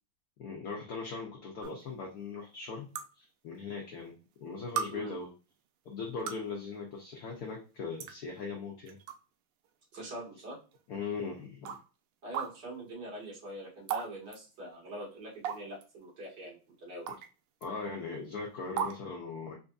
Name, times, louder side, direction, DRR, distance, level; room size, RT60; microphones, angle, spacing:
voice 1, 0.4-2.9 3.1-4.1 4.4-5.3 5.8-9.0 10.9-11.8 17.6-19.6, left 4 dB, 65° left, 0 dB, 1.0 m, -39 dB
sound 1, 1.6-1.7 3.0-3.1 4.1-4.2 4.8-4.9 6.0-6.5 7.5-7.6 8.0-8.1 8.9-9.2 9.7-9.8 10.7-10.8 11.7-11.8 12.3-12.5 13.9-14.1 14.3-14.4 15.4-15.8 17.1-17.3 17.6-17.7 18.8-19.0, right 8 dB, 85° right, 1.5 m, -34 dB
voice 2, 9.9-10.6 12.2-17.1, right 1 dB, 50° right, -5 dB, 2.2 m, -43 dB
4.3 x 2.6 x 2.3 m, 0.34 s
omnidirectional pair, 2.4 m